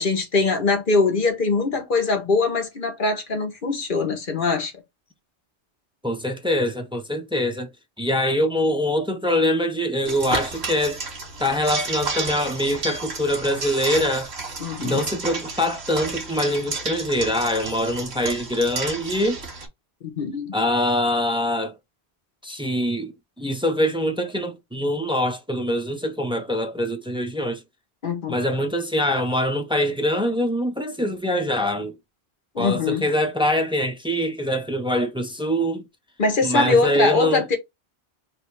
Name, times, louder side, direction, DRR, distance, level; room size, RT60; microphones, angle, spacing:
voice 1, 0.0-4.7 14.6-15.0 20.2-20.5 28.0-28.4 32.5-33.0 36.2-37.6, left 3 dB, 55° left, 1.1 m, -22 dB
voice 2, 6.0-7.7 8.0-11.0 11.4-14.3 14.8-19.4 20.5-21.7 22.4-27.6 28.3-31.9 32.6-35.8 36.4-37.4, equal, 10° right, 0.3 m, -24 dB
sound 1, 10.0-19.7, right 3 dB, 85° right, 1.6 m, -32 dB
3.4 x 2.6 x 4.4 m
omnidirectional pair, 1.1 m